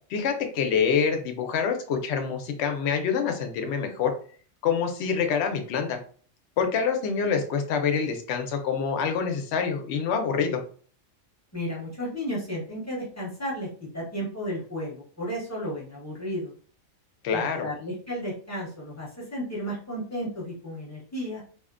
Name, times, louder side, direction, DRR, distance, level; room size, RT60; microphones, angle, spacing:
voice 1, 0.1-4.1 4.6-6.0 6.6-10.6 17.2-17.7, left 6 dB, 65° left, 5 dB, 0.7 m, -26 dB
voice 2, 11.5-13.7 13.9-16.5 17.3-21.4, equal, 15° left, -6 dB, 0.8 m, -33 dB
2.6 x 2.1 x 2.4 m, 0.44 s
omnidirectional pair, 1.4 m